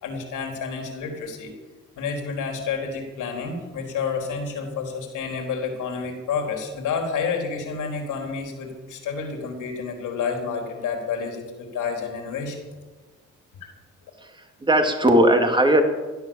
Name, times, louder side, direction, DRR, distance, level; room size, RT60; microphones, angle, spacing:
voice 1, 0.0-1.5 2.0-12.6, left 5 dB, 85° left, 2 dB, 4.0 m, -29 dB
voice 2, 14.2-15.8, right 1 dB, 15° right, 4 dB, 2.7 m, -18 dB
16.5 x 11.0 x 7.3 m, 1.3 s
cardioid pair, 90°, 30 cm